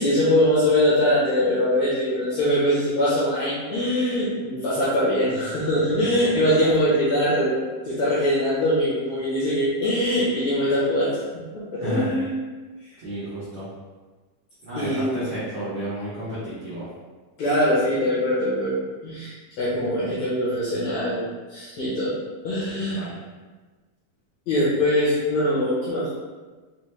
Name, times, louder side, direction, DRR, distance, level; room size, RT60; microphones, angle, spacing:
voice 1, 0.0-7.5 7.8-12.3 14.7-15.2 17.4-21.2 21.5-22.1 22.4-23.1 24.5-26.2, left 1 dB, 65° left, -9 dB, 1.7 m, -22 dB
voice 2, 13.0-13.7 14.6-16.9 22.7-23.1, equal, 85° right, -11 dB, 1.2 m, -32 dB
5.8 x 2.2 x 3.2 m, 1.3 s
omnidirectional pair, 4.1 m